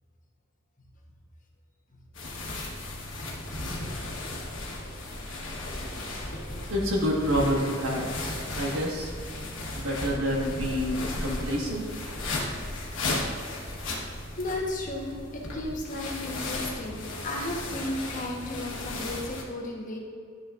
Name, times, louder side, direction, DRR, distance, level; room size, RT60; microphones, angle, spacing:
sound 1, 2.1-19.4, left 2 dB, 75° left, 1.3 m, -35 dB
voice 1, 6.7-8.2 8.5-9.1 9.7-11.8, equal, 85° right, -3 dB, 1.6 m, -28 dB
voice 2, 13.8-20.0, left 1 dB, 45° left, -1 dB, 1.1 m, -34 dB
10.5 x 6.2 x 2.5 m, 2.3 s
head